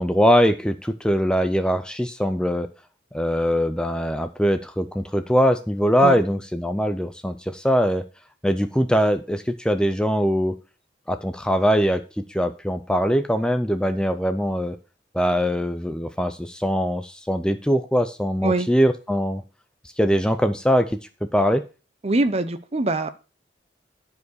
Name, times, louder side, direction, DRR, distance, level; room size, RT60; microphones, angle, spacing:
voice 1, 0.0-2.7 3.1-8.0 8.4-10.6 11.1-14.8 15.1-19.4 20.0-21.0 21.3-21.6, equal, 5° left, 9 dB, 0.5 m, -22 dB
voice 2, 22.0-23.1, right 2 dB, 35° right, 11 dB, 0.8 m, -23 dB
11.0 x 4.8 x 6.3 m, 0.33 s
head